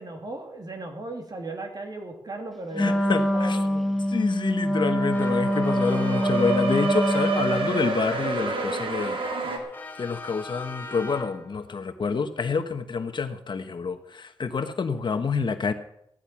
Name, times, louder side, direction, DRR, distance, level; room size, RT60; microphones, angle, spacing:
voice 1, 0.0-4.0 9.4-9.6, right 2 dB, 50° right, 3 dB, 3.0 m, -37 dB
Wind instrument woodwind instrument, 2.7-7.9, equal, ahead, 1.4 m, -25 dB
voice 2, 2.8-3.6 4.1-9.2 10.0-15.7, left 5 dB, 60° left, 9 dB, 1.2 m, -28 dB
sound 1, 4.7-9.6, right 4 dB, 75° right, 2.4 m, -29 dB
sound 2, 5.1-11.6, left 2 dB, 20° left, 1.9 m, -41 dB
15.0 x 11.0 x 6.0 m, 0.77 s
wide cardioid pair, 85°, 9 cm